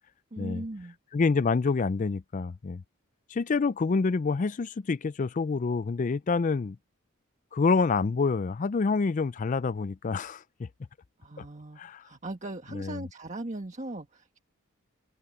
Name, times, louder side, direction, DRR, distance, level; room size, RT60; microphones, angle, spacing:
voice 1, 0.3-1.0 11.2-14.4, right 1 dB, 35° right, 1.5 m, -39 dB
voice 2, 1.1-2.8 3.3-6.8 7.5-10.7 11.8-12.0 12.7-13.0, left 4 dB, 35° left, 0.4 m, -27 dB
head